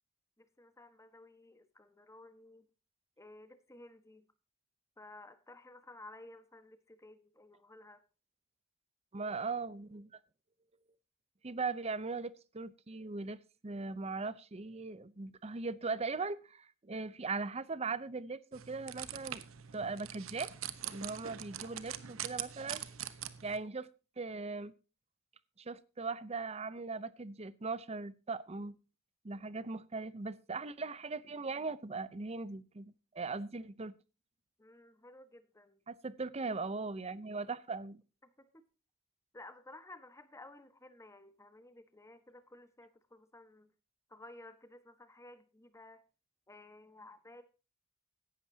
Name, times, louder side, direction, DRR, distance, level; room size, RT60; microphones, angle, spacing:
voice 1, 0.4-2.7 3.2-4.3 5.0-8.0 34.6-35.8 38.2-38.6 39.3-43.7 44.1-46.0 46.5-47.4, left 2 dB, 15° left, 10 dB, 1.3 m, -55 dB
voice 2, 9.1-10.1 11.4-19.4 19.7-20.5 20.8-22.8 23.4-23.9 24.2-24.7 25.6-28.8 29.2-33.9 35.9-38.0, right 4 dB, 30° right, 17 dB, 0.7 m, -39 dB
sound 1, 18.5-23.6, right 10 dB, 65° right, 1.0 m, -43 dB
16.0 x 12.0 x 2.8 m, 0.31 s
head